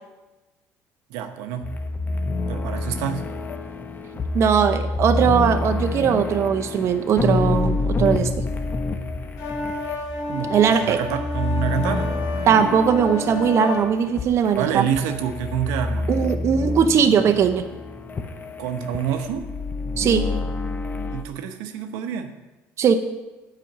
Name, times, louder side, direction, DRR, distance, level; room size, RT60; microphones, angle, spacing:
voice 1, 1.1-1.7 2.5-3.2 10.3-12.1 14.5-16.1 18.6-19.5 21.1-22.3, right 9 dB, 85° right, 7 dB, 0.8 m, -27 dB
sound 1, 1.6-21.2, left 3 dB, 30° left, 0.8 m, -28 dB
voice 2, 4.3-8.3 10.5-11.0 12.5-14.9 16.1-17.6 20.0-20.3 22.8-22.9, right 7 dB, 50° right, 6 dB, 0.7 m, -19 dB
sound 2, 9.4-13.8, left 2 dB, 75° left, 2.4 m, -31 dB
9.0 x 5.1 x 7.3 m, 1.1 s
supercardioid pair, 100°, 6 cm